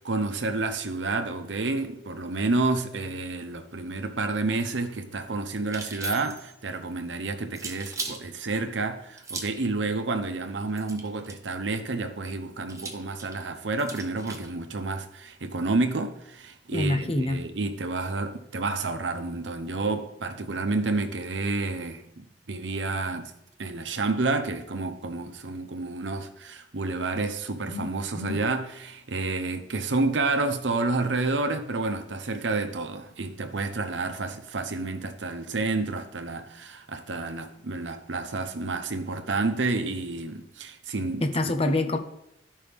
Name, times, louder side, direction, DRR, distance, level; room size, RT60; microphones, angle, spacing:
voice 1, 0.0-23.3 23.6-41.5, right 3 dB, 80° right, 0.8 m, -30 dB
sound 1, 5.6-6.5 7.5-8.2 9.2-9.7 10.7-11.5 12.7-14.5, right 3 dB, 15° right, 0.9 m, -37 dB
voice 2, 16.7-17.4 27.7-27.9 28.2-28.4 41.2-42.0, left 2 dB, 35° left, 0.8 m, -26 dB
12.5 x 5.3 x 3.5 m
head